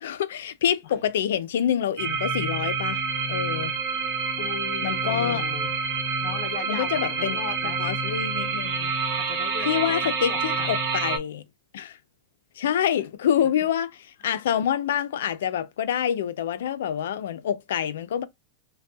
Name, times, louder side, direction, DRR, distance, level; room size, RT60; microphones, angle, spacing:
voice 1, 0.0-3.0 3.3-3.7 4.8-5.4 6.7-7.4 7.8-8.9 9.7-11.4 11.7-12.0 12.6-13.9 14.2-18.2, left 9 dB, 85° left, 0.5 m, -26 dB
sound 1, 2.0-11.2, right 5 dB, 45° right, 1.2 m, -27 dB
voice 2, 4.4-5.7 6.2-7.8 9.2-10.7 13.6-13.7, left 6 dB, 45° left, 0.8 m, -37 dB
5.3 x 2.3 x 2.2 m
supercardioid pair, 180°, 0 cm